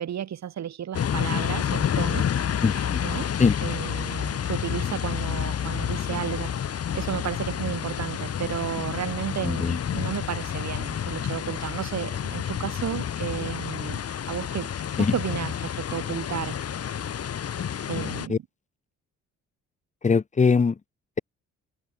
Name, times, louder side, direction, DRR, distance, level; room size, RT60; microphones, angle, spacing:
voice 1, 0.0-3.3 3.6-14.0 14.3-14.7 15.0-16.7 17.9-18.4, right 10 dB, 65° right, 5.1 m, -33 dB
sound 1, 0.9-18.3, left 8 dB, 55° left, 2.4 m, -29 dB
voice 2, 2.6-3.0 3.4-3.5 9.5-9.8 15.0-15.1 18.3-18.4 20.0-20.7, left 5 dB, 25° left, 0.9 m, -21 dB
cardioid pair, 90°, 30 cm